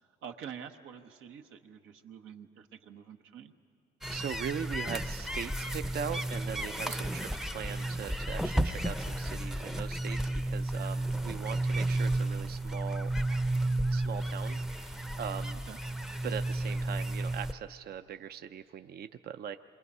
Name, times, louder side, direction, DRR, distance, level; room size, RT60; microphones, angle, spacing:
voice 1, 0.2-3.5 6.9-7.1 15.7-15.8, right 8 dB, 85° right, 5 dB, 1.1 m, -47 dB
sound 1, 4.0-17.5, right 1 dB, ahead, 0.6 m, -32 dB
voice 2, 4.1-7.3 7.5-13.1 13.9-15.6 16.2-19.6, right 8 dB, 50° right, 9 dB, 0.5 m, -40 dB
27.5 x 23.0 x 5.4 m, 2.5 s
cardioid pair, 90°, 20 cm